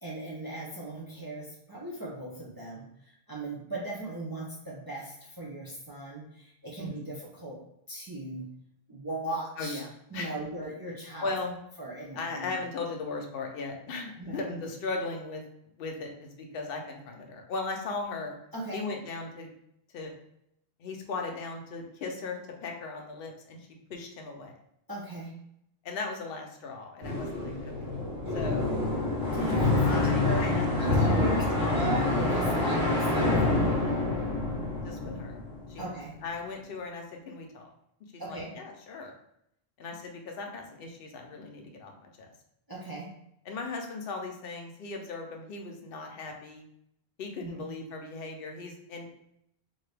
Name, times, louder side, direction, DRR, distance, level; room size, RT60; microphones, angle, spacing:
voice 1, 0.0-7.6 7.9-8.5 8.9-9.8 10.1-11.3 11.8-12.5 14.2-14.4 18.5-18.8 24.9-25.4 29.3-31.4 31.7-33.3 35.8-36.2 38.2-38.5 42.7-43.1 47.4-47.6, right 2 dB, 30° right, -4 dB, 0.4 m, -37 dB
voice 2, 6.8-7.2 9.6-10.3 11.2-11.6 12.1-15.4 15.8-18.4 18.7-19.5 19.9-20.1 20.8-23.6 23.9-24.5 25.8-27.9 28.3-28.8 29.8-31.0 31.2-31.8 34.8-35.4 35.7-35.9 36.2-37.7 38.1-39.1 39.8-42.3 43.5-46.6 47.2-49.1, left 3 dB, 65° left, 2 dB, 0.8 m, -37 dB
sound 1, 27.0-35.8, left 2 dB, 70° right, 1.4 m, -27 dB
2.8 x 2.6 x 3.3 m, 0.76 s
omnidirectional pair, 1.1 m